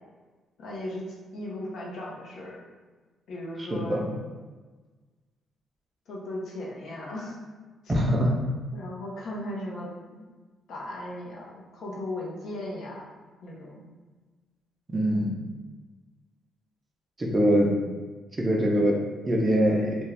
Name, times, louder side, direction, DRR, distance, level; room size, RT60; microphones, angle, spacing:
voice 1, 0.6-1.1 1.3-2.6 3.3-4.0 6.1-7.4 8.7-10.2 10.7-13.0 13.4-13.9, left 1 dB, 70° left, -4 dB, 0.7 m, -37 dB
voice 2, 3.6-4.1 7.9-8.3 14.9-15.3 17.2-17.7 18.4-20.0, equal, 25° right, -1 dB, 0.6 m, -23 dB
2.6 x 2.3 x 3.2 m, 1.3 s
cardioid pair, 90°, 0 cm